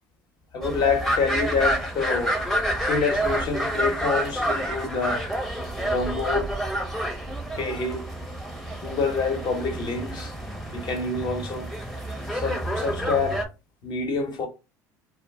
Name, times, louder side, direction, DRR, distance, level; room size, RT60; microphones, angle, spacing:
voice 1, 0.5-2.4 2.8-5.3 5.8-6.5 7.6-8.1 8.8-10.3 10.7-11.7 12.3-13.5 13.8-14.5, left 4 dB, 50° left, 0.9 m, -27 dB
sound 1, 0.6-13.5, right 1 dB, 5° left, 0.6 m, -29 dB
2.3 x 2.1 x 3.4 m
hypercardioid pair, 75°, 9 cm